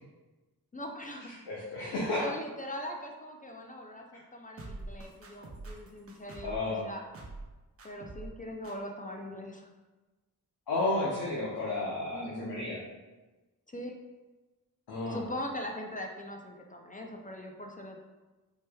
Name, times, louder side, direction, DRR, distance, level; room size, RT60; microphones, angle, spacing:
voice 1, 0.7-1.4 1.8-7.0 7.8-9.7 12.1-12.7 13.7-13.9 15.0-18.0, equal, 20° left, 2 dB, 0.4 m, -41 dB
voice 2, 1.5-2.3 6.4-6.9 10.7-12.8 14.9-15.2, left 2 dB, 85° left, -7 dB, 0.9 m, -32 dB
sound 1, 4.6-6.7 7.1-7.5 7.8-8.4 8.6-8.7, right 2 dB, 35° right, 0.8 m, -44 dB
4.4 x 3.1 x 2.2 m, 1.2 s
cardioid pair, 65°, 39 cm